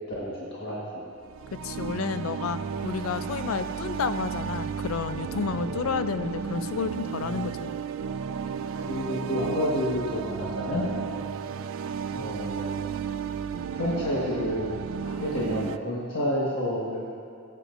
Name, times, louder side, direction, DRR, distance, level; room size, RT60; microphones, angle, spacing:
voice 1, 0.2-0.8 5.5-5.7 8.8-10.8 12.1-12.8 13.7-14.8 15.0-17.1, equal, 60° left, -6 dB, 1.5 m, -29 dB
sound 1, 1.2-15.8, right 6 dB, 65° right, 0.3 m, -33 dB
voice 2, 1.6-7.7, left 5 dB, 80° left, 11 dB, 0.4 m, -31 dB
15.0 x 8.5 x 2.6 m, 2.6 s
head